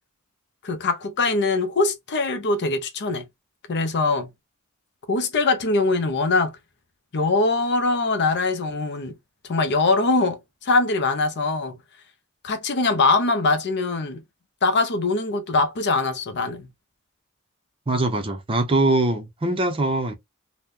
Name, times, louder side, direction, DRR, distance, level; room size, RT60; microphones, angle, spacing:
voice 1, 0.6-3.2 3.7-4.3 5.1-6.6 7.1-9.1 9.5-11.8 12.4-14.2 14.6-16.7, left 3 dB, 50° left, 0.6 m, -22 dB
voice 2, 17.9-20.1, right 2 dB, 25° right, 0.6 m, -22 dB
2.8 x 2.1 x 3.5 m
head